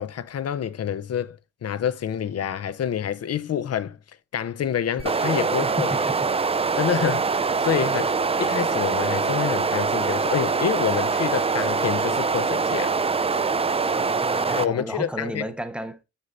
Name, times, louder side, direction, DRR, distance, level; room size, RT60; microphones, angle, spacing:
voice 1, 0.0-4.0 4.3-6.0 6.7-8.1 8.4-12.9 14.5-15.4, left 9 dB, 55° left, 0.6 m, -27 dB
sound 1, 5.0-14.7, right 4 dB, 20° right, 0.4 m, -24 dB
voice 2, 5.6-6.3 7.8-7.9 14.0-16.0, right 1 dB, 5° right, 1.0 m, -33 dB
8.9 x 6.6 x 2.5 m
cardioid pair, 75°, 29 cm